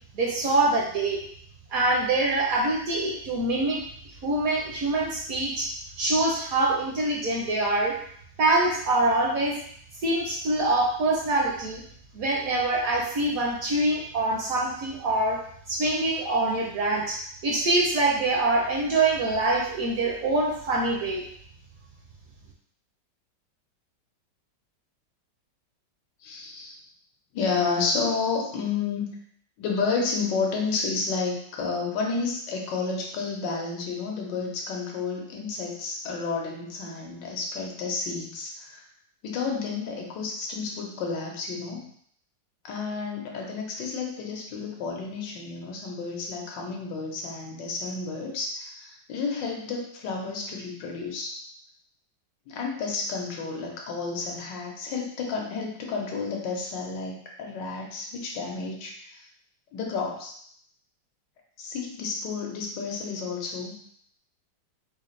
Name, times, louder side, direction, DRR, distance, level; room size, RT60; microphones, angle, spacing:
voice 1, 0.1-1.2 1.7-3.8 4.2-5.7 6.0-8.0 8.4-9.5 10.0-11.8 12.1-15.4 15.7-21.2, right 2 dB, 65° right, -2 dB, 0.9 m, -24 dB
voice 2, 26.2-26.8 27.3-29.1 29.6-38.8 39.2-41.9 42.6-51.4 52.5-59.2 59.7-60.3 61.6-63.7, left 4 dB, 80° left, 0 dB, 1.4 m, -31 dB
4.2 x 2.4 x 3.1 m, 0.63 s
omnidirectional pair, 2.0 m